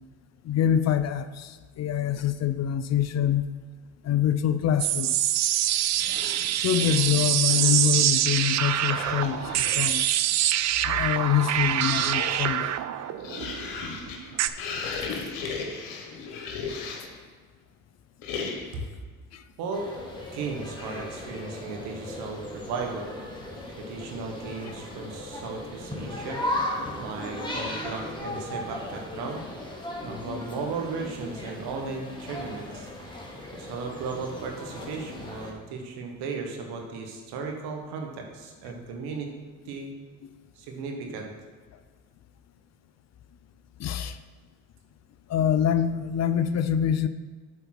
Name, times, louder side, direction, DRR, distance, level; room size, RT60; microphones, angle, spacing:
voice 1, 0.5-1.5 1.8-3.5 4.0-5.2 6.6-10.0 10.9-12.7 43.8-44.2 45.3-47.1, left 9 dB, 45° left, 12 dB, 0.5 m, -25 dB
sound 1, 4.8-14.5, right 12 dB, 45° right, 0.4 m, -25 dB
sound 2, 6.0-7.9 8.8-10.0 10.7-17.2 18.2-18.9, left 4 dB, 80° left, 1.2 m, -37 dB
sound 3, 19.7-35.5, left 1 dB, 10° left, 1.8 m, -37 dB
voice 2, 20.3-23.1 23.8-26.4 27.0-29.4 30.0-32.9 33.5-39.3 39.7-39.9 40.6-41.3, right 4 dB, 75° right, 2 dB, 1.4 m, -35 dB
7.8 x 4.1 x 5.9 m, 1.5 s
supercardioid pair, 65°, 38 cm